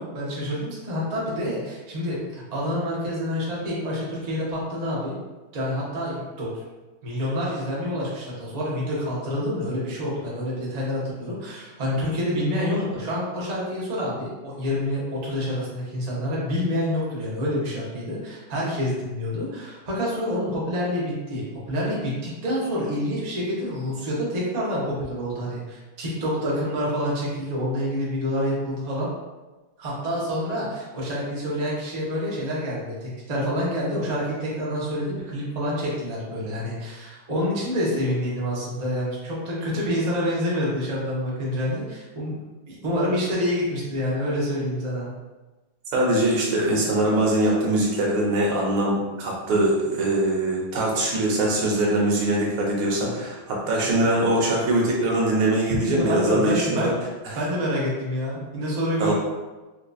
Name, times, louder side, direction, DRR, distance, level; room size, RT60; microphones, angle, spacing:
voice 1, 0.0-5.2 5.5-6.5 7.0-29.1 29.8-42.4 42.7-45.1 56.0-57.0 57.4-59.1, equal, 65° right, -6 dB, 0.4 m, -27 dB
voice 2, 45.9-56.9 57.2-57.4 59.0-59.1, right 1 dB, 90° right, -3 dB, 1.7 m, -22 dB
4.5 x 2.6 x 2.3 m, 1.2 s
omnidirectional pair, 2.3 m